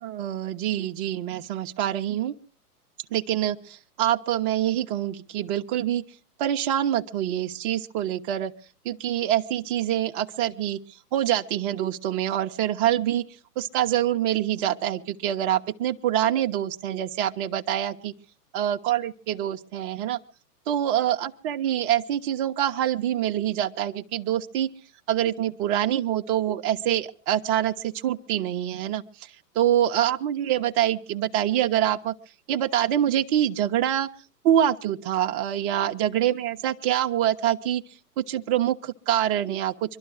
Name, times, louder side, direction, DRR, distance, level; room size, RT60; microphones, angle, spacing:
voice 1, 0.0-2.3 3.1-6.0 6.4-8.5 8.8-13.3 13.6-18.1 18.5-20.2 20.7-24.7 25.1-32.1 32.5-34.1 34.4-40.0, right 11 dB, 35° right, 4 dB, 0.8 m, -25 dB
23.0 x 12.0 x 4.8 m, 0.39 s
hypercardioid pair, 125°, 46 cm